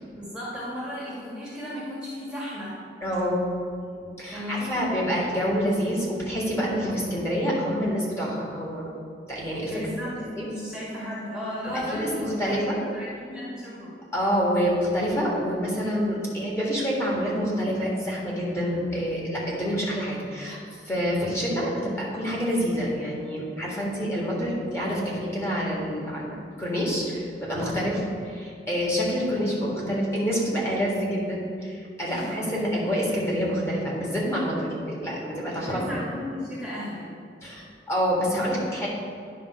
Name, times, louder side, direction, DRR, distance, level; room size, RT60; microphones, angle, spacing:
voice 1, 0.1-2.7 4.0-5.2 9.5-13.9 32.1-32.4 35.6-37.1, left 1 dB, 5° right, -7 dB, 1.5 m, -35 dB
voice 2, 3.0-3.4 4.2-8.9 9.3-9.8 10.4-10.5 11.7-12.8 14.1-20.6 20.8-35.8 37.4-38.9, equal, 15° left, -5 dB, 1.7 m, -27 dB
10.0 x 3.7 x 6.0 m, 2.3 s
head